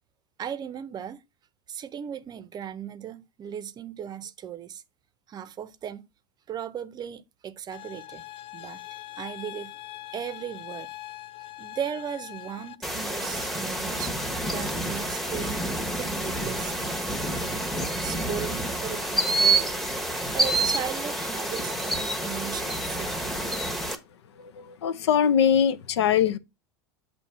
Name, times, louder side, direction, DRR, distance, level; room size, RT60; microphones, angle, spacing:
voice 1, 0.4-1.2 1.7-4.8 5.3-6.1 6.5-8.2 8.5-8.8 9.2-9.7 10.1-10.9 11.6-14.1 14.5-15.6 16.0-17.0 17.4-17.7 18.0-23.5, right 9 dB, 30° right, 0.6 m, -37 dB
sound 1, 7.7-12.8, left 15 dB, 40° left, 0.5 m, -42 dB
sound 2, 12.8-23.9, right 2 dB, ahead, 1.0 m, -28 dB
voice 2, 24.3-26.4, left 8 dB, 85° left, 0.6 m, -22 dB
7.1 x 2.8 x 5.5 m
hypercardioid pair, 105°, 14 cm